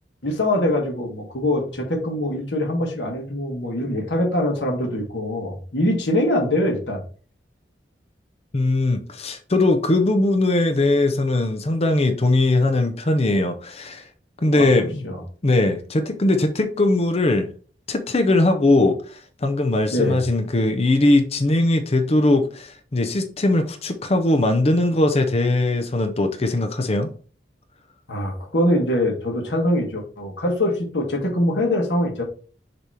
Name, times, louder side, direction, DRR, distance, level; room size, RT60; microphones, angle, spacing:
voice 1, 0.2-7.0 14.6-14.7 15.0-15.2 19.9-20.2 28.1-32.2, left 1 dB, 85° left, 1.5 m, -23 dB
voice 2, 8.5-14.0 14.4-15.1 15.4-17.5 17.9-27.1, left 2 dB, 35° left, 0.6 m, -20 dB
6.7 x 3.0 x 4.8 m
head